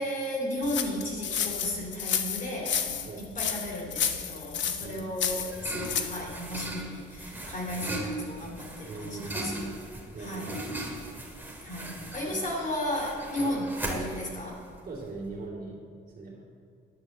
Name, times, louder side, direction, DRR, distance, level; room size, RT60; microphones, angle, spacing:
voice 1, 0.0-9.7 10.2-10.6 11.6-14.6, left 1 dB, 40° left, -1 dB, 3.2 m, -34 dB
sound 1, 0.6-6.2, left 8 dB, 65° left, 1.0 m, -31 dB
sound 2, 4.8-15.4, right 1 dB, 10° right, 2.6 m, -39 dB
voice 2, 8.8-9.7 10.1-10.5 12.3-12.4 13.4-13.7 14.8-15.8 16.1-16.4, right 2 dB, 40° right, -9 dB, 2.9 m, -39 dB
11.0 x 6.3 x 7.4 m, 2.4 s
cardioid pair, 90°, 20 cm